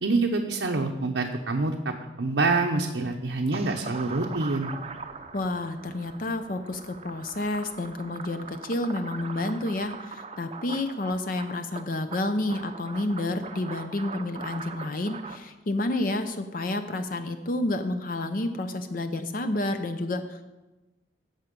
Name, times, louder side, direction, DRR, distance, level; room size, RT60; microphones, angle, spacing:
voice 1, 0.0-4.7, right 3 dB, 80° right, 1 dB, 0.8 m, -26 dB
sound 1, 3.5-15.4, right 4 dB, 35° right, 0.6 m, -41 dB
voice 2, 5.3-20.5, left 2 dB, 50° left, 8 dB, 0.6 m, -30 dB
15.5 x 5.7 x 5.2 m, 1.1 s
head